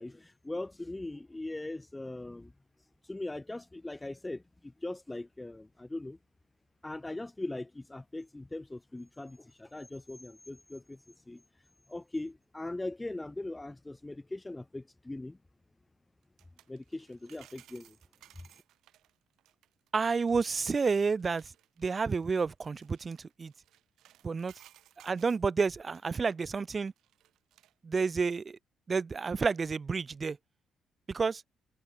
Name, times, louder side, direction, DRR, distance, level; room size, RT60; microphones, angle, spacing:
voice 1, 0.0-2.5 3.1-6.2 6.8-11.0 11.3-11.4 11.9-15.4 16.7-18.0, left 2 dB, 15° left, 0.3 m, -40 dB
sound 1, 16.2-25.4 25.9-27.7 28.1-28.2, right 13 dB, 80° right, 4.9 m, -61 dB
voice 2, 19.9-21.5 21.8-23.5 24.2-24.5 25.0-26.9 27.8-28.6 28.9-30.4 31.1-31.4, right 5 dB, 35° right, 0.8 m, -30 dB
cardioid pair, 90°, 0 cm